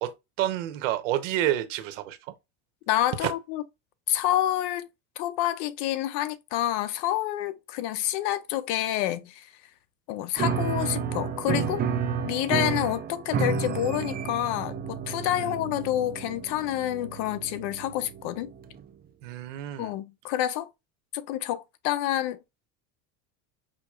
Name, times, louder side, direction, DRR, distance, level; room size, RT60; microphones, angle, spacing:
voice 1, 0.0-2.3 3.2-3.3 15.4-15.6 19.2-19.9, right 12 dB, 80° right, 0.9 m, -29 dB
voice 2, 2.9-3.6 4.1-4.9 5.2-9.5 10.1-11.8 12.2-18.5 19.8-20.7 21.1-22.4, left 13 dB, 65° left, 0.7 m, -28 dB
Piano, 10.4-18.8, right 6 dB, 25° right, 0.5 m, -31 dB
5.1 x 2.9 x 2.3 m
supercardioid pair, 110°, 38 cm